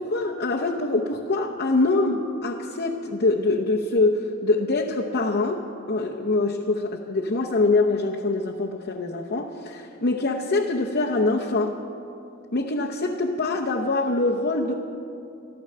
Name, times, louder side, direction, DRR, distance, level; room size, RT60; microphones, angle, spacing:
voice 1, 0.0-11.8 12.5-14.7, left 2 dB, 45° left, -2 dB, 0.8 m, -24 dB
13.5 x 13.0 x 6.7 m, 2.6 s
head